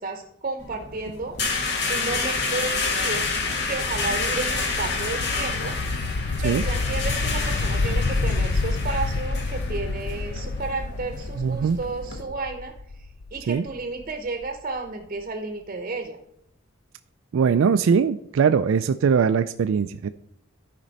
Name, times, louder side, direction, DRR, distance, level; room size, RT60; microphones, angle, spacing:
voice 1, 0.0-1.4 1.9-3.3 3.7-5.7 6.4-16.2, right 3 dB, 40° right, 6 dB, 0.8 m, -32 dB
sound 1, 0.6-12.2, left 4 dB, 60° left, 1.5 m, -29 dB
sound 2, 0.8-14.5, left 3 dB, 75° left, 0.5 m, -30 dB
voice 2, 11.4-11.8 13.5-13.6 17.3-20.1, right 6 dB, 75° right, 10 dB, 0.3 m, -21 dB
13.5 x 5.1 x 4.1 m, 0.76 s
head